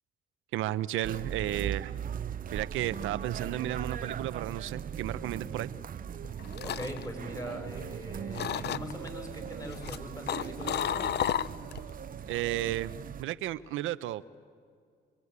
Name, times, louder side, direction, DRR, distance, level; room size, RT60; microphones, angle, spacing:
voice 1, 0.5-1.9 2.5-5.7 12.3-14.4, right 14 dB, 90° right, 15 dB, 0.7 m, -33 dB
sound 1, 1.0-13.2, right 8 dB, 45° right, 0.6 m, -39 dB
sound 2, 6.1-8.0 8.3-9.1 9.6-11.9 12.2-12.6, left 10 dB, 60° left, 0.7 m, -33 dB
voice 2, 6.6-10.8, left 1 dB, 15° left, 4 dB, 6.2 m, -41 dB
24.5 x 22.0 x 9.6 m, 2.2 s
cardioid pair, 90°, 20 cm